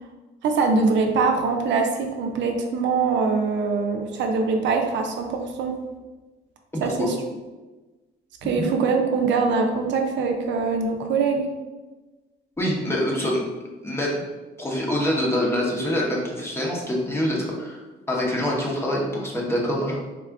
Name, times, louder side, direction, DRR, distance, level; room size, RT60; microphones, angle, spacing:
voice 1, 0.4-5.7 6.8-7.2 8.4-11.5, right 4 dB, 80° right, 3 dB, 0.5 m, -23 dB
voice 2, 6.7-7.1 8.6-8.7 12.6-13.4 13.8-14.2 14.6-20.0, equal, 15° left, -3 dB, 0.8 m, -25 dB
3.6 x 2.4 x 3.4 m, 1.2 s
cardioid pair, 135°, 18 cm